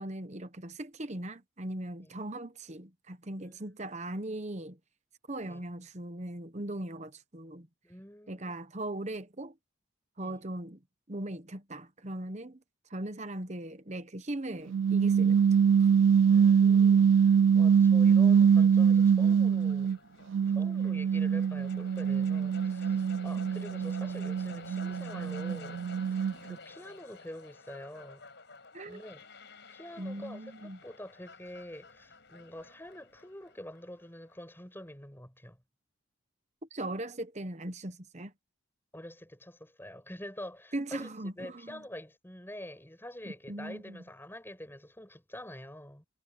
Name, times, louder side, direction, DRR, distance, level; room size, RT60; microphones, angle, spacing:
voice 1, 0.0-4.8 5.3-7.7 8.3-9.6 10.2-10.8 11.1-12.6 12.9-15.5 23.4-23.5 28.7-29.0 30.0-30.8 36.7-38.3 40.7-41.8 43.2-44.0, right 1 dB, 35° right, 1.0 m, -39 dB
voice 2, 7.8-8.5 10.2-10.4 16.3-20.0 20.4-25.8 26.1-28.3 28.8-29.2 29.7-35.6 38.9-41.1 41.4-46.0, left 1 dB, 10° left, 6.7 m, -46 dB
sound 1, 14.7-20.0 20.3-26.6, right 7 dB, 65° right, 0.3 m, -24 dB
sound 2, 18.3-34.4, left 3 dB, 55° left, 7.0 m, -51 dB
head